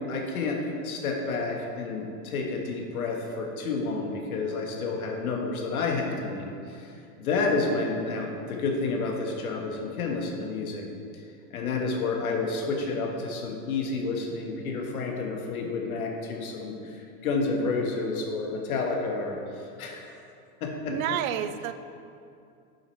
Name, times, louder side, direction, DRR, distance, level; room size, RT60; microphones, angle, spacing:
voice 1, 0.0-10.8 11.5-20.1 20.6-21.2, left 3 dB, 85° left, 1 dB, 1.4 m, -30 dB
voice 2, 20.9-21.7, right 10 dB, 75° right, 12 dB, 0.6 m, -29 dB
7.5 x 5.7 x 4.5 m, 2.5 s
hypercardioid pair, 115°, 42 cm